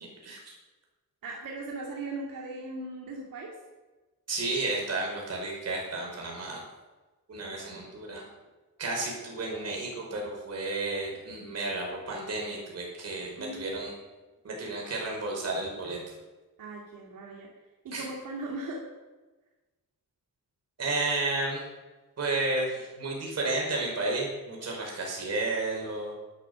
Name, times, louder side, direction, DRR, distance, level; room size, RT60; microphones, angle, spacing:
voice 1, 0.2-0.5 4.3-6.6 7.3-8.2 8.8-13.9 14.4-16.0 17.9-18.1 20.8-21.7 22.2-26.2, right 2 dB, 50° right, -2 dB, 5.3 m, -32 dB
voice 2, 1.2-3.6 13.4-13.8 16.6-17.5 17.8-18.8, right 2 dB, 85° right, -1 dB, 2.4 m, -38 dB
12.0 x 10.5 x 6.7 m, 1.2 s
wide cardioid pair, 150°, 33 cm